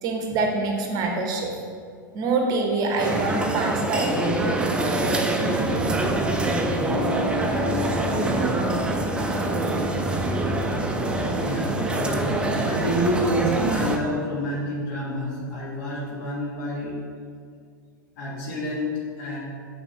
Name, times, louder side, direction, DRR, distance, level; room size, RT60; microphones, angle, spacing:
voice 1, 0.0-1.6 2.1-4.5, right 3 dB, 35° right, 2 dB, 1.0 m, -25 dB
sound 1, 3.0-14.0, right 2 dB, 10° right, 0.4 m, -25 dB
sound 2, 6.5-12.5, left 2 dB, 20° left, 0.9 m, -34 dB
voice 2, 11.3-12.3 12.6-16.9 18.2-19.4, equal, 50° left, -5 dB, 1.6 m, -28 dB
8.7 x 3.7 x 3.2 m, 2.1 s
figure-of-eight pair, 95°, 11 cm